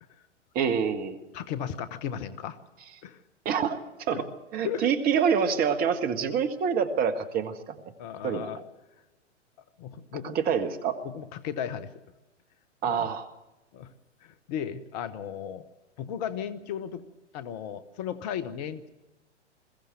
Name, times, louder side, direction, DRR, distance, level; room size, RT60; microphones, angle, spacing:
voice 1, 0.5-1.2 3.4-4.3 4.5-7.7 8.2-8.5 10.2-11.0 12.8-13.3, right 7 dB, 25° right, 8 dB, 1.6 m, -26 dB
voice 2, 1.3-2.6 3.0-3.2 4.1-4.2 4.6-4.9 8.0-8.6 9.8-10.4 11.1-11.9 12.8-13.1 13.7-13.9 14.2-15.6 16.0-17.0 17.3-18.9, left 8 dB, 35° left, 13 dB, 1.1 m, -35 dB
21.5 x 16.0 x 7.8 m, 1.0 s
figure-of-eight pair, 110°, 36 cm